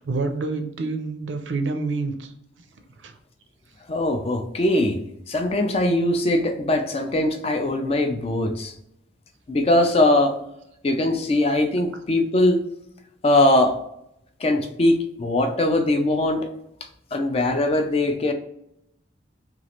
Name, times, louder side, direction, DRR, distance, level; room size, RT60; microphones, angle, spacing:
voice 1, 0.0-2.3 3.0-3.1, right 3 dB, 70° right, 6 dB, 0.5 m, -27 dB
voice 2, 3.9-5.0 5.3-8.7 9.5-10.4 10.8-12.6 13.2-13.7 14.4-16.5 17.1-18.3, left 1 dB, 30° left, 6 dB, 0.4 m, -21 dB
3.0 x 2.4 x 2.8 m, 0.77 s
head